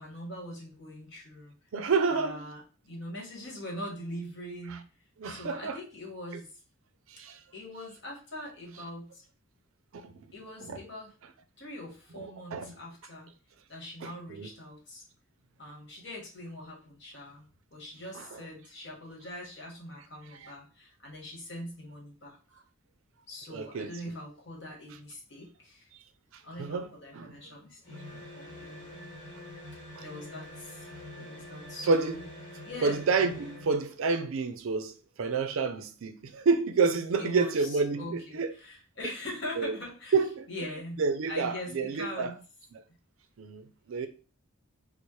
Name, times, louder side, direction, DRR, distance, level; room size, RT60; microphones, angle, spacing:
voice 1, 0.0-1.5 2.1-4.9 5.2-6.6 7.5-9.2 10.3-11.1 11.6-13.3 13.7-15.0 15.6-22.6 23.3-25.9 26.4-28.0 28.3-28.9 30.0-32.2 32.6-33.0 37.2-40.2 40.5-42.4 44.0-44.1, left 1 dB, 55° left, 1.2 m, -42 dB
voice 2, 1.7-2.4 5.2-5.8 7.2-7.4 9.9-10.0 10.7-10.8 12.5-12.7 14.0-14.5 18.2-18.4 23.5-23.9 26.6-26.9 27.1-27.4 28.1-28.2 30.0-30.1 31.9-32.1 32.8-38.5 39.6-39.8 40.1-40.5 41.0-42.3 42.7-42.8 43.4-44.1, right 4 dB, 70° right, 0.4 m, -29 dB
sound 1, 27.8-33.8, left 1 dB, 40° left, 1.6 m, -45 dB
4.1 x 2.0 x 3.1 m
head